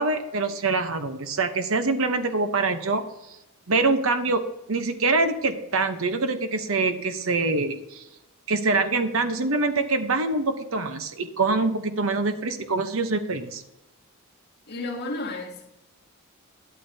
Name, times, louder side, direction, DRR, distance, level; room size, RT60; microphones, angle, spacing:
voice 1, 0.0-3.0 3.7-8.0 8.5-13.6, right 3 dB, 65° right, 0.9 m, -25 dB
voice 2, 14.7-15.7, left 2 dB, 50° left, 2.4 m, -32 dB
12.0 x 11.5 x 2.8 m
head